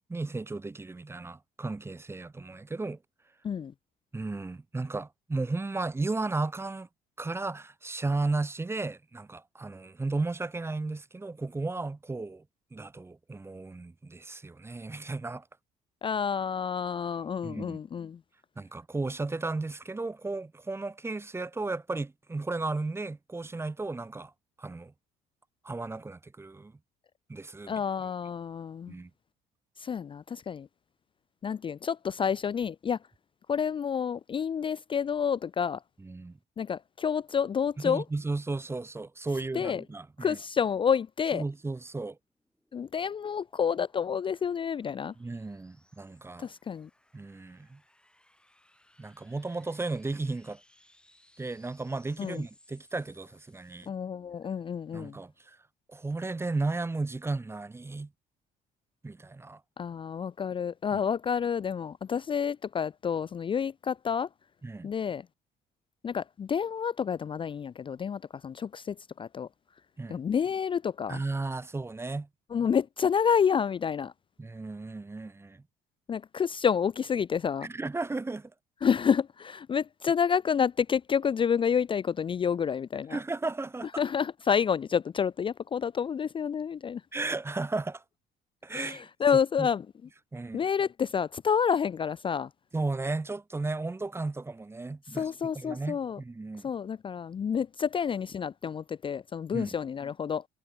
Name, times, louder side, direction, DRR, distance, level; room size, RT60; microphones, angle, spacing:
voice 1, 0.0-3.0 4.1-6.9 7.2-12.4 12.7-15.5 17.4-17.8 18.6-24.3 24.6-24.9 25.6-26.8 27.3-27.8 28.9-29.1 36.0-36.4 37.8-40.4 41.3-42.2 45.2-46.5 47.1-47.8 49.0-50.6 51.4-53.9 54.9-55.6 55.9-58.1 59.0-59.6 60.9-61.0 64.6-64.9 70.0-70.2 71.1-72.3 74.4-75.6 77.6-78.5 83.1-83.9 87.1-88.0 88.6-89.1 89.6-89.7 90.3-90.6 92.7-95.3 95.5-96.7 99.5-99.7, right 3 dB, 15° right, 1.2 m, -34 dB
voice 2, 16.0-18.2 27.7-28.9 29.8-30.7 31.4-33.0 33.5-35.8 36.6-38.0 39.5-39.8 40.2-41.4 42.7-45.1 46.4-46.9 52.2-52.4 53.9-55.2 59.8-64.3 64.8-65.3 66.0-69.5 70.1-71.2 72.5-74.1 76.1-77.7 78.8-83.2 84.0-87.0 88.7-89.9 90.5-92.5 95.1-96.2 96.6-100.5, left 7 dB, 30° left, 0.5 m, -29 dB
sound 1, 42.2-53.9, left 1 dB, 5° left, 4.7 m, -64 dB
cardioid pair, 110°, 17 cm